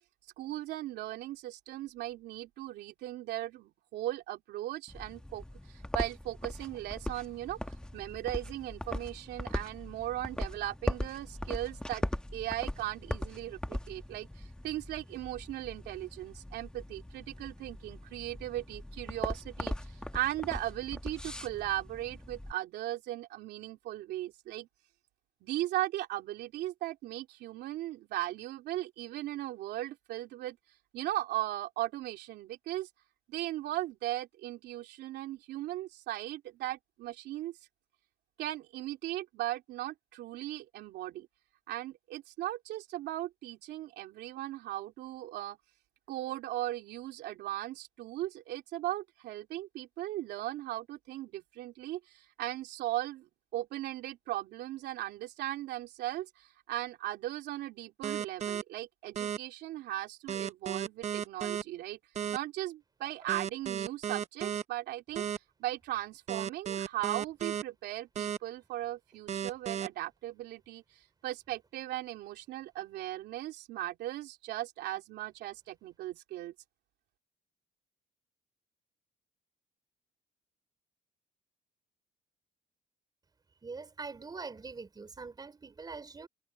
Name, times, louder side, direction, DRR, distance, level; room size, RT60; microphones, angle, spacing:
voice 1, 0.4-7.6 7.9-12.1 12.3-24.7 25.4-30.6 30.9-32.9 33.3-37.6 38.4-41.3 41.7-45.6 46.1-53.3 53.5-62.0 62.3-65.2 65.6-70.8 71.2-76.5, right 15 dB, 80° right, 3.0 m, -38 dB
sound 1, 4.9-22.5, left 1 dB, 5° left, 1.3 m, -40 dB
sound 2, 58.0-58.6 59.2-59.4 60.3-61.6 62.2-62.4 63.3-64.6 65.2-65.4 66.3-67.6 68.2-68.4 69.3-69.9, right 9 dB, 40° right, 0.8 m, -34 dB
voice 2, 83.6-86.3, right 4 dB, 25° right, 4.4 m, -43 dB
cardioid pair, 110°, 17 cm